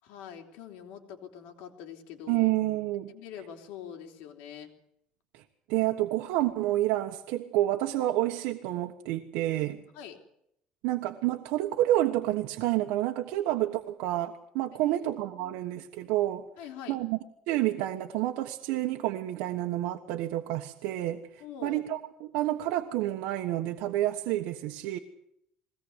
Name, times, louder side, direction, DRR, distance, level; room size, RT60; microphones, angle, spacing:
voice 1, 0.0-2.5 3.1-4.7 9.9-10.2 14.8-15.0 15.4-15.6 16.6-17.0 21.4-21.8, left 9 dB, 80° left, 3 dB, 3.9 m, -44 dB
voice 2, 2.3-3.1 5.3-5.4 5.7-9.8 10.8-16.4 16.9-17.2 17.5-25.0, right 15 dB, 90° right, 4 dB, 1.4 m, -29 dB
22.0 x 18.0 x 8.2 m, 0.73 s
cardioid pair, 160°, 2 cm